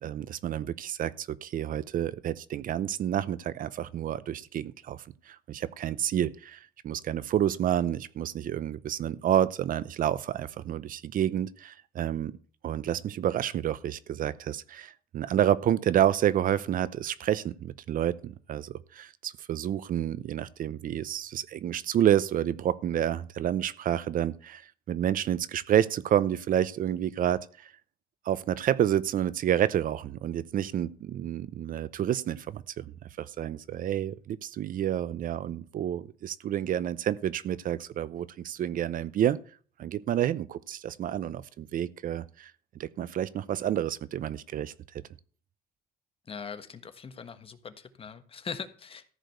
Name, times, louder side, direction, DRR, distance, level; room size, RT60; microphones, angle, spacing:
voice 1, 0.0-5.0 5.3-6.6 6.8-12.3 12.6-24.6 24.9-27.5 28.3-32.8 33.2-39.4 39.8-42.5 42.8-44.7, right 10 dB, 55° right, 0.7 m, -29 dB
voice 2, 46.3-49.1, left 6 dB, 35° left, 1.4 m, -41 dB
14.0 x 5.1 x 7.9 m
cardioid pair, 110°, 17 cm